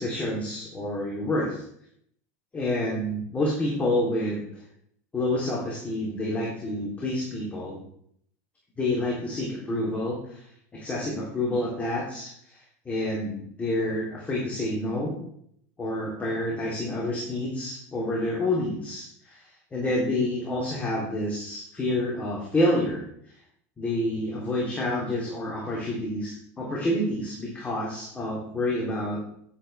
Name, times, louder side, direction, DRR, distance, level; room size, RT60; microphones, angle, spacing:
voice 1, 0.0-1.6 2.5-4.5 5.1-7.8 8.8-10.4 10.7-15.1 15.8-23.0 23.8-29.2, left 1 dB, 15° left, -5 dB, 3.1 m, -28 dB
10.5 x 10.0 x 3.4 m, 0.67 s
supercardioid pair, 125°, 9 cm